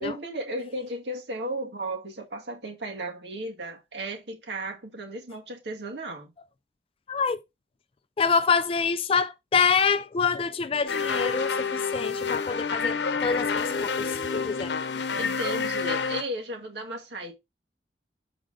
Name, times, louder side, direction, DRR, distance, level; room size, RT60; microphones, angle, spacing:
voice 1, 0.0-6.3 15.1-17.3, right 1 dB, 80° right, 1.9 m, -35 dB
voice 2, 7.1-7.4 8.2-15.1, left 5 dB, 30° left, 0.3 m, -26 dB
sound 1, 10.9-16.2, left 5 dB, 80° left, 0.8 m, -28 dB
6.5 x 4.9 x 3.6 m
head